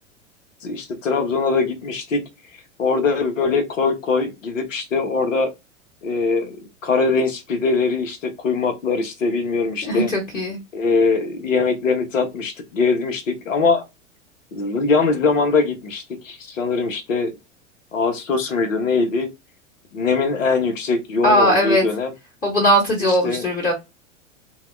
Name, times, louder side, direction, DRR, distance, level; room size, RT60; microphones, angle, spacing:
voice 1, 0.6-2.2 2.8-5.5 6.0-6.6 6.8-10.1 10.7-13.8 14.5-17.3 17.9-19.3 19.9-22.1 23.0-23.5, left 4 dB, 80° left, 0.9 m, -22 dB
voice 2, 9.8-10.6 21.2-21.8 22.4-23.7, equal, 20° left, 1.2 m, -19 dB
2.7 x 2.2 x 3.1 m
hypercardioid pair, 95°, 38 cm